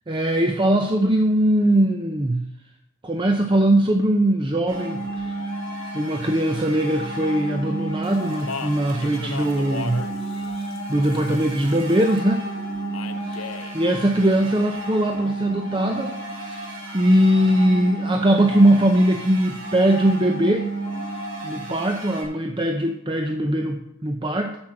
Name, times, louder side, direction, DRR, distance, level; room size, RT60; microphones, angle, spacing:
voice 1, 0.1-2.4 3.0-5.5 5.9-12.5 13.7-16.2 16.5-20.7 21.4-24.6, right 1 dB, 25° right, 4 dB, 0.6 m, -21 dB
sound 1, 4.7-22.2, right 2 dB, 70° right, 4.4 m, -32 dB
Speech, 8.0-12.2 12.9-13.8, left 5 dB, 70° left, 0.6 m, -37 dB
7.5 x 6.2 x 7.7 m, 0.77 s
head